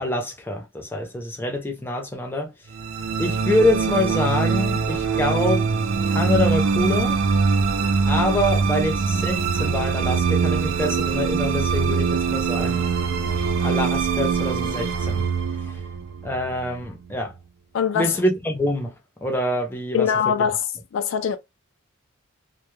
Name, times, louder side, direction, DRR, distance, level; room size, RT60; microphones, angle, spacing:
voice 1, 0.0-2.5 3.2-5.7 6.1-7.2 8.1-12.9 13.6-15.2 15.6-15.8 16.2-17.3 17.9-18.9 19.2-20.3, left 1 dB, 10° left, 0.5 m, -25 dB
sound 1, 2.7-17.1, right 5 dB, 65° right, 0.4 m, -23 dB
voice 2, 17.7-18.2 19.9-20.7 20.9-21.4, left 7 dB, 60° left, 0.3 m, -22 dB
2.1 x 2.1 x 3.0 m
head